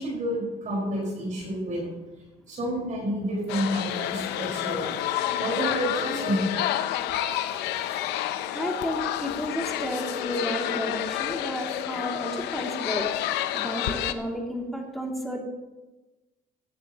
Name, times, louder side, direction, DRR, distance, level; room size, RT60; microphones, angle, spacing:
voice 1, 0.0-1.9 2.5-4.9 5.4-6.7, equal, 50° right, -4 dB, 4.9 m, -29 dB
sound 1, 3.5-14.1, left 12 dB, 90° left, 0.7 m, -29 dB
voice 2, 8.5-13.1 13.5-15.4, equal, ahead, -1 dB, 2.6 m, -32 dB
17.0 x 12.0 x 3.0 m, 1.1 s
cardioid pair, 110°, 17 cm